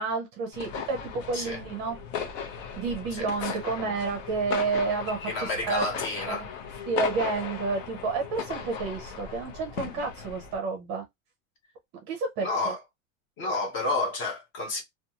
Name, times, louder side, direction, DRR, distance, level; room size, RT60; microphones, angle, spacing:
voice 1, 0.0-2.0 2.8-5.8 6.3-6.4 6.9-11.0 12.1-12.7, right 4 dB, 30° right, 0.5 m, -30 dB
sound 1, 0.5-10.6, left 7 dB, 70° left, 0.9 m, -37 dB
voice 2, 3.1-3.6 5.3-6.4 12.4-12.8 13.4-14.8, left 2 dB, 30° left, 0.6 m, -30 dB
2.6 x 2.3 x 2.8 m
supercardioid pair, 180°, 40 cm